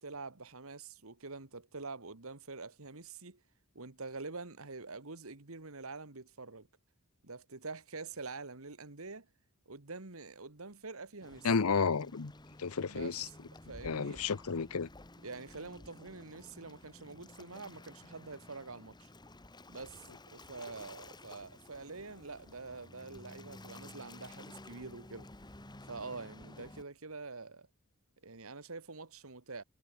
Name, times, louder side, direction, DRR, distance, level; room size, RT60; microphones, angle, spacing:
voice 1, 0.0-3.4 3.8-6.7 7.2-9.3 9.7-11.5 12.8-13.4 13.7-14.2 15.2-19.1 19.7-20.0 20.3-25.3 25.9-27.7 28.2-29.6, right 3 dB, 70° right, 2.0 m, -46 dB
Waves surf, 11.2-26.8, left 2 dB, 20° left, 1.7 m, -53 dB
voice 2, 11.4-12.3 12.6-13.2 13.8-14.9, left 5 dB, 80° left, 0.7 m, -31 dB
head